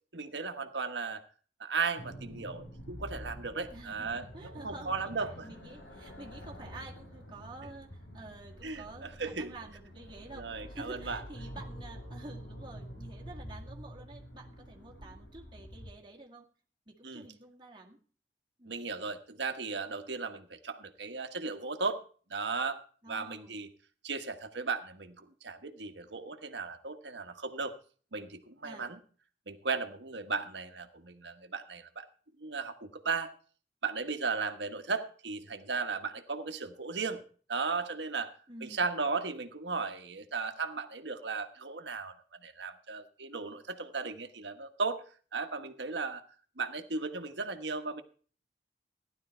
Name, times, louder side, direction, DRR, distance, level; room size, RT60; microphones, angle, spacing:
voice 1, 0.1-1.2 1.6-5.3 8.6-9.5 10.3-11.2 17.0-17.2 18.7-22.0 22.3-22.8 23.1-23.7 24.0-27.7 28.1-29.0 29.5-32.1 32.4-33.3 33.8-37.2 37.5-38.3 38.6-42.1 42.4-45.0 45.3-46.2 46.6-48.0, right 4 dB, 80° right, 7 dB, 1.4 m, -36 dB
sound 1, 2.0-15.9, equal, 85° left, 3.8 m, -47 dB
voice 2, 3.7-16.5 16.9-18.0 18.6-18.8 23.0-23.5 28.6-28.9 38.5-38.9, right 2 dB, 25° right, -1 dB, 2.0 m, -49 dB
15.5 x 11.5 x 4.4 m, 0.42 s
head